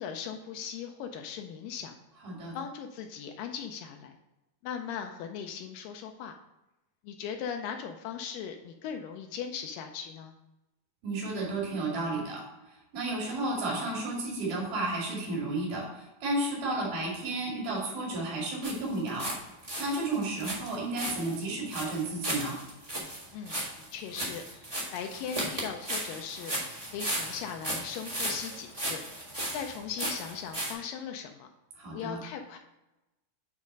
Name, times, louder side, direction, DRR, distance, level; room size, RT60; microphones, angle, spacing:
voice 1, 0.0-2.0 2.5-4.1 4.6-6.4 7.0-10.3 23.3-26.5 26.9-29.0 29.5-31.5 31.9-32.6, left 7 dB, 80° left, 4 dB, 2.1 m, -39 dB
voice 2, 2.2-2.6 11.0-19.3 19.8-22.6 31.8-32.2, right 2 dB, 75° right, -3 dB, 4.1 m, -32 dB
sound 1, 18.6-19.4 19.6-30.7, right 1 dB, 55° right, 0.4 m, -35 dB
8.5 x 3.6 x 5.2 m, 0.99 s
omnidirectional pair, 4.2 m